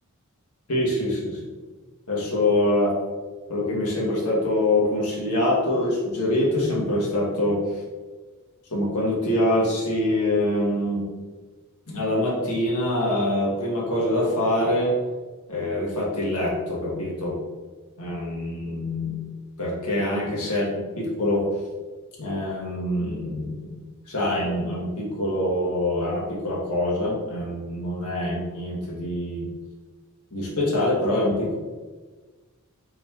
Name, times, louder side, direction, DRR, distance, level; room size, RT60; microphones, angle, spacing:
voice 1, 0.7-1.4 2.1-2.9 3.5-7.6 8.7-11.0 11.9-15.0 15.5-17.4 18.0-19.2 19.6-20.7 21.0-21.5 22.2-23.7 24.1-29.5 30.3-31.6, left 1 dB, 75° left, -4 dB, 1.0 m, -24 dB
3.9 x 2.3 x 4.2 m, 1.3 s
head